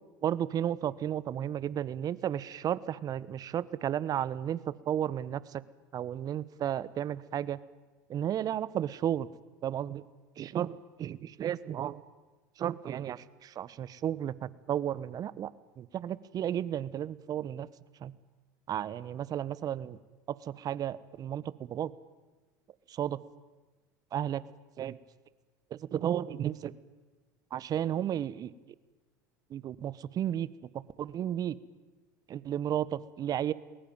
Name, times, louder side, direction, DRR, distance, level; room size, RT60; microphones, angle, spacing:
voice 1, 0.2-5.6 5.9-7.6 8.1-9.3 9.6-10.0 10.4-10.7 11.0-12.0 12.6-15.5 15.8-17.7 18.0-18.1 18.7-20.0 20.3-21.9 22.9-23.2 24.1-24.4 24.8-25.0 25.7-26.7 27.5-28.5 29.5-30.5 31.0-31.6 32.3-33.5, right 10 dB, 40° right, 18 dB, 1.3 m, -33 dB
28.5 x 21.0 x 9.2 m, 1.2 s
hypercardioid pair, 80°, 10 cm